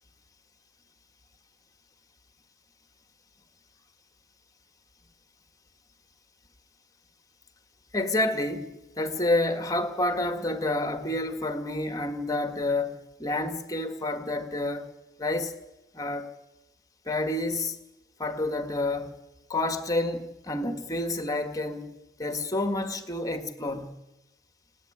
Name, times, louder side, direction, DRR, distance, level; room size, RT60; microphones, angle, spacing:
voice 1, 7.9-14.9 15.2-15.6 15.9-16.3 17.1-17.8 18.2-19.2 19.5-21.9 22.2-24.0, left 2 dB, 20° left, 1.9 m, -29 dB
29.5 x 10.0 x 8.9 m
head